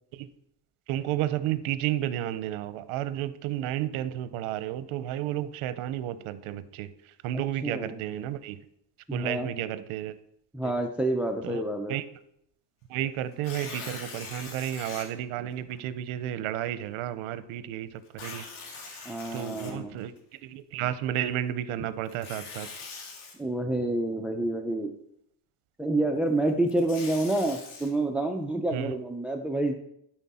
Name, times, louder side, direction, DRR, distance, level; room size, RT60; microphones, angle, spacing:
voice 1, 0.9-6.9 7.2-8.6 9.1-10.2 10.6-10.7 11.4-11.6 11.9-12.1 12.9-19.1 19.3-22.7 28.7-28.9, right 12 dB, 85° right, 14 dB, 0.7 m, -32 dB
voice 2, 7.6-8.0 9.1-9.5 10.5-12.0 19.1-20.0 23.4-24.9 25.8-29.7, right 1 dB, 5° right, 5 dB, 0.4 m, -28 dB
Tearing, 13.3-15.1 15.7-15.8 18.1-20.2 22.1-23.3 26.5-27.9, left 4 dB, 80° left, 2.3 m, -42 dB
12.5 x 4.5 x 4.2 m, 0.76 s
cardioid pair, 130°, 48 cm